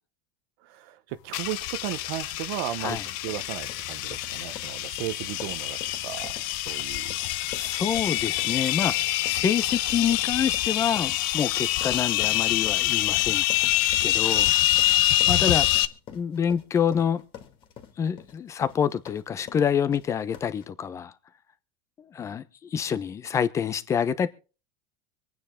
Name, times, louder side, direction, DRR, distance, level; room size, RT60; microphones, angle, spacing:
voice 1, 0.6-3.0 3.2-7.2, right 14 dB, 65° right, 1.0 m, -35 dB
sound 1, 1.3-15.9, left 15 dB, 65° left, 0.9 m, -26 dB
sound 2, 2.8-20.7, left 9 dB, 45° left, 2.6 m, -47 dB
voice 2, 7.5-8.9 9.2-13.4 14.0-14.5 15.3-15.7 16.1-17.2 18.0-21.1 22.0-24.3, left 7 dB, 25° left, 1.0 m, -27 dB
25.0 x 9.5 x 3.7 m
supercardioid pair, 140°, 12 cm